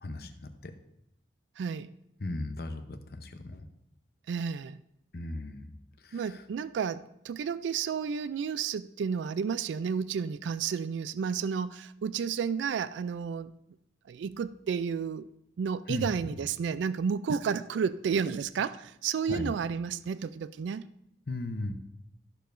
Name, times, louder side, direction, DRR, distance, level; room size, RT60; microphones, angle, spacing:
voice 1, 0.0-0.7 2.2-3.6 5.1-5.7 6.0-6.4 15.9-16.4 19.3-19.5 21.3-21.7, left 2 dB, 55° left, 8 dB, 0.7 m, -37 dB
voice 2, 1.6-1.9 4.3-4.8 6.1-13.5 14.1-15.3 15.6-20.8, right 6 dB, 85° right, 15 dB, 0.3 m, -31 dB
13.0 x 6.7 x 2.6 m, 0.78 s
head